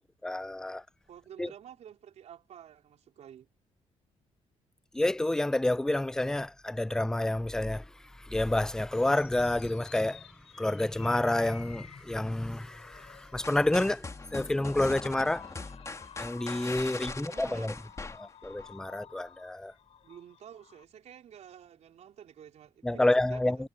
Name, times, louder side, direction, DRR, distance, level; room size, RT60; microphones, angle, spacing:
voice 1, 0.2-0.8 1.4-1.5 4.9-7.8 8.2-10.2 10.6-14.1 14.3-15.4 16.2-17.7 18.2-19.7 22.8-23.7, left 1 dB, 5° left, 0.5 m, -29 dB
voice 2, 1.1-3.5 16.9-17.7 20.0-23.7, right 9 dB, 70° right, 4.1 m, -50 dB
sound 1, 8.7-20.8, left 8 dB, 60° left, 3.8 m, -53 dB
sound 2, 13.4-18.7, left 3 dB, 25° left, 2.9 m, -41 dB
cardioid pair, 95°, 12 cm